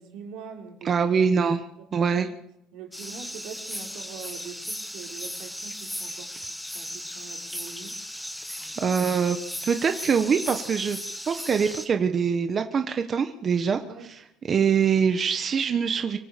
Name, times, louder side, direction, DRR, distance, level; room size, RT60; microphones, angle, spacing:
voice 1, 0.0-1.1 1.8-2.3 2.7-8.0 8.6-9.0 13.8-14.1, right 7 dB, 75° right, 4.3 m, -44 dB
voice 2, 0.8-1.6 1.9-2.3 8.5-9.4 9.7-11.0 11.3-13.8 14.1-16.2, right 6 dB, 30° right, 1.2 m, -24 dB
sound 1, 2.9-11.9, equal, ahead, 1.9 m, -36 dB
24.5 x 15.5 x 8.3 m
cardioid pair, 155°, 0 cm